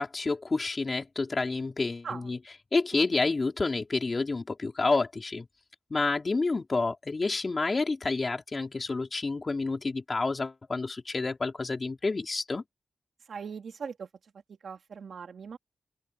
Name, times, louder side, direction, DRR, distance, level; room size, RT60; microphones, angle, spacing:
voice 1, 0.0-2.4 2.7-5.5 5.9-12.6, left 3 dB, 35° left, 4.3 m, -29 dB
voice 2, 13.3-14.1 14.5-15.6, right 6 dB, 75° right, 2.6 m, -40 dB
open air
wide cardioid pair, 120°, 0 cm